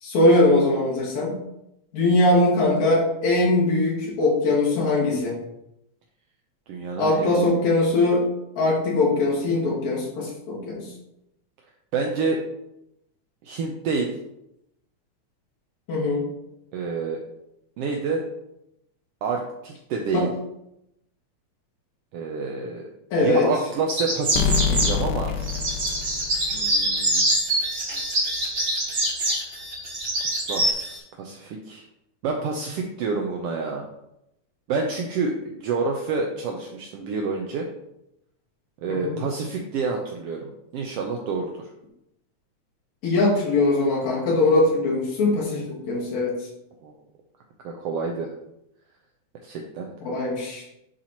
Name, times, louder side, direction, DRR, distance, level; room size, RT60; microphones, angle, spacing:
voice 1, 0.0-1.4 1.9-5.4 7.0-8.3 8.6-10.9 15.9-16.3 20.1-20.3 23.1-23.5 38.9-39.2 43.0-46.3 50.0-50.6, left 2 dB, 70° left, -4 dB, 3.2 m, -21 dB
voice 2, 6.7-7.5 11.9-12.4 13.4-14.1 16.7-17.2 17.8-18.2 19.2-20.3 22.1-22.9 23.1-25.3 26.5-27.3 30.4-31.8 32.2-33.8 34.7-37.7 38.8-41.7 46.8-46.9 47.6-48.3 49.4-49.9, right 4 dB, 80° right, 1 dB, 1.3 m, -28 dB
sound 1, 23.9-25.0 25.4-30.7, right 1 dB, 35° right, 1.7 m, -24 dB
sound 2, 24.4-27.1, left 7 dB, 85° left, 2.0 m, -26 dB
sound 3, 25.2-31.0, right 1 dB, 55° right, 2.9 m, -40 dB
10.5 x 4.2 x 2.9 m, 0.84 s
omnidirectional pair, 3.5 m